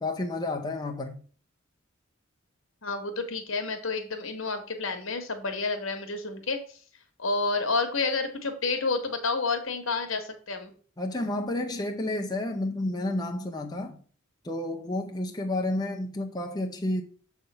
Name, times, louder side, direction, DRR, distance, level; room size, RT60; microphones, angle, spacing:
voice 1, 0.0-1.2 11.0-14.0 14.4-17.0, left 1 dB, 20° left, 0.6 m, -30 dB
voice 2, 2.8-6.6 7.2-10.7, left 3 dB, 75° left, 1.3 m, -29 dB
6.8 x 3.6 x 5.5 m
head